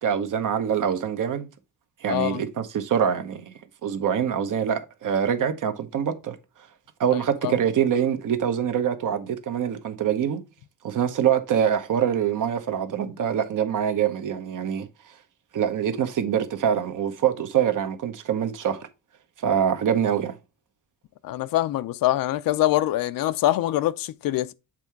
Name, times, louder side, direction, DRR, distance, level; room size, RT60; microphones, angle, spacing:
voice 1, 0.0-1.5 2.0-3.5 3.8-6.4 7.0-10.4 10.8-14.9 15.5-18.9 19.4-20.3, right 8 dB, 65° right, 1.0 m, -24 dB
voice 2, 2.1-2.4 7.4-7.5 21.2-24.5, left 14 dB, 90° left, 0.5 m, -24 dB
7.5 x 3.7 x 4.5 m
cardioid pair, 115°, 33 cm